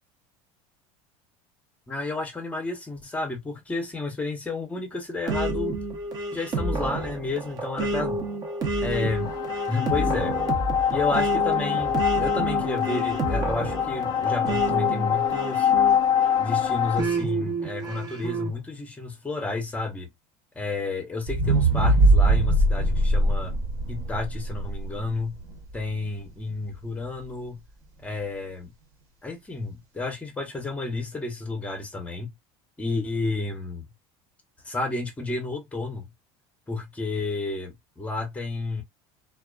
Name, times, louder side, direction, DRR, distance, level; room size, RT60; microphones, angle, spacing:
voice 1, 1.9-5.8 6.3-8.2 8.8-9.3 9.7-10.3 10.9-15.7 16.4-20.1 20.5-23.5 23.9-25.4 25.7-27.6 28.0-28.7 29.2-32.3 32.8-33.9 34.6-36.1 36.7-38.8, left 3 dB, 10° left, 0.7 m, -31 dB
Back-Tracking, 5.3-16.4 17.0-18.5, right 2 dB, 30° right, 0.7 m, -29 dB
sound 1, 8.9-17.0, left 9 dB, 30° left, 0.4 m, -25 dB
sound 2, 21.3-25.5 26.0-26.1, right 2 dB, 50° right, 1.1 m, -21 dB
2.4 x 2.3 x 2.3 m
cardioid pair, 145°, 13 cm